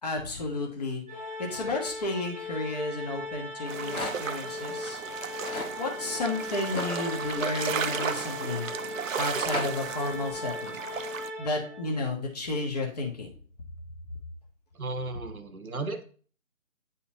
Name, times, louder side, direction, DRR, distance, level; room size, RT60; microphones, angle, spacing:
voice 1, 0.0-5.0 5.8-8.7 9.2-10.8 11.4-13.3, left 2 dB, 30° left, 1 dB, 1.2 m, -32 dB
Organ, 1.1-12.0, left 1 dB, 5° left, 0.6 m, -38 dB
Rattle, 3.5-4.4 5.1-5.7 6.6-8.6 9.1-9.7, left 2 dB, 85° left, 1.7 m, -37 dB
sound 1, 3.7-11.3, right 7 dB, 70° right, 0.6 m, -35 dB
voice 2, 14.7-16.0, right 2 dB, 85° right, 8 dB, 1.1 m, -34 dB
8.8 x 4.2 x 2.7 m, 0.43 s
figure-of-eight pair, 150°, 41 cm